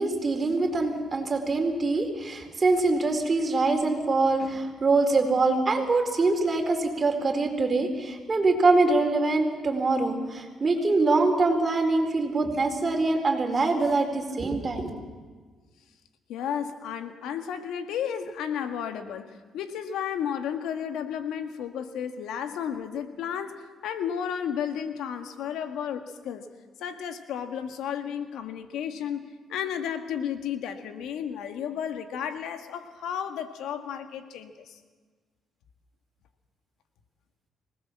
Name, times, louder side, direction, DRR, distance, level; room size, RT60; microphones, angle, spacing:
voice 1, 0.0-14.9, right 3 dB, 35° right, 3 dB, 4.4 m, -24 dB
voice 2, 16.3-19.3 19.5-26.5 26.8-34.8, left 8 dB, 85° left, 7 dB, 1.8 m, -33 dB
25.5 x 19.5 x 7.5 m, 1.4 s
cardioid pair, 90°, 0 cm